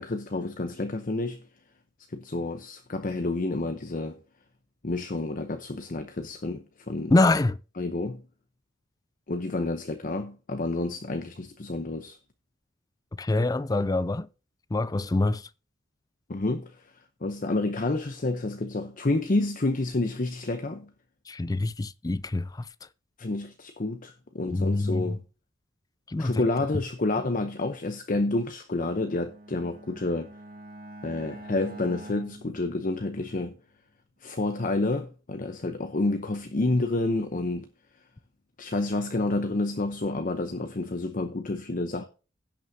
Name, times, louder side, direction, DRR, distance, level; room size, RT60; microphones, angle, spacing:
voice 1, 0.0-1.4 2.1-4.2 4.8-7.1 7.8-8.2 9.3-12.2 16.3-16.9 17.2-20.9 23.2-25.2 26.2-30.3 31.0-33.6 34.2-37.7 38.6-42.0, left 2 dB, 45° left, 0.8 m, -29 dB
voice 2, 7.1-7.6 13.2-14.3 14.7-15.5 21.3-22.7 24.5-25.2 26.1-26.4, left 2 dB, 20° left, 0.4 m, -25 dB
Bowed string instrument, 28.9-33.5, right 1 dB, 50° right, 1.7 m, -46 dB
16.5 x 6.3 x 2.7 m
head